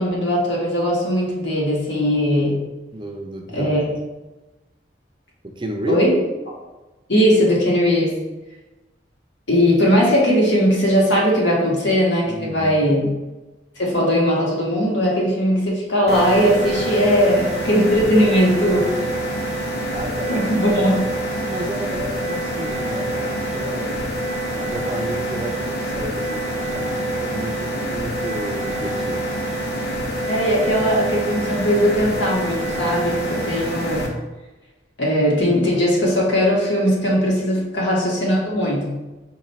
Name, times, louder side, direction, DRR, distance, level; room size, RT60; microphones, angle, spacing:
voice 1, 0.0-2.6 3.5-3.8 5.9-6.2 7.1-8.1 9.5-13.1 13.8-18.9 20.3-21.0 30.3-34.0 35.0-39.0, equal, 85° left, -3 dB, 1.3 m, -19 dB
voice 2, 2.9-4.0 5.4-6.0 12.3-13.0 19.9-20.6 21.3-24.1 24.5-29.3 37.5-37.7, right 1 dB, 25° right, 2 dB, 0.4 m, -32 dB
sound 1, 16.1-34.1, right 1 dB, 60° left, 0.8 m, -26 dB
5.0 x 2.3 x 4.0 m, 1.1 s
head